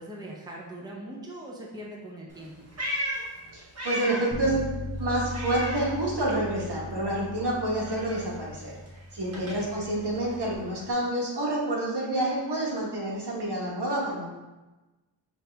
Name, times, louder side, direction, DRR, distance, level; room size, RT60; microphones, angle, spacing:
voice 1, 0.0-2.7 9.3-9.6, right 1 dB, 10° right, -3 dB, 0.7 m, -41 dB
Meow, 2.3-4.5 4.8-6.5 6.7-10.9, equal, 35° right, 1.0 m, -37 dB
voice 2, 3.5-4.6 5.0-8.7 9.1-14.3, right 1 dB, 60° right, -4 dB, 1.2 m, -28 dB
Bass guitar, 4.3-10.6, left 1 dB, 45° left, 0.8 m, -39 dB
5.3 x 2.7 x 3.3 m, 1.1 s
wide cardioid pair, 70°, 45 cm